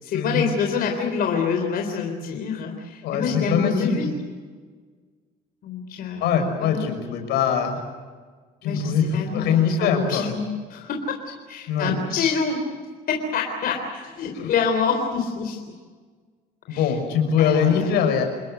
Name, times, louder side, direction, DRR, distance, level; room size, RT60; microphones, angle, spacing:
voice 1, 0.0-4.1 5.6-6.9 8.6-10.4 10.7-11.2 11.5-12.6 13.1-15.6 16.7-16.9 17.4-18.0, left 6 dB, 60° left, 3 dB, 3.8 m, -26 dB
voice 2, 3.0-4.1 6.2-7.8 8.6-10.3 11.7-11.9 14.3-14.5 16.7-18.2, left 7 dB, 85° left, 5 dB, 6.1 m, -22 dB
28.5 x 21.0 x 8.0 m, 1.5 s
cardioid pair, 110°, 17 cm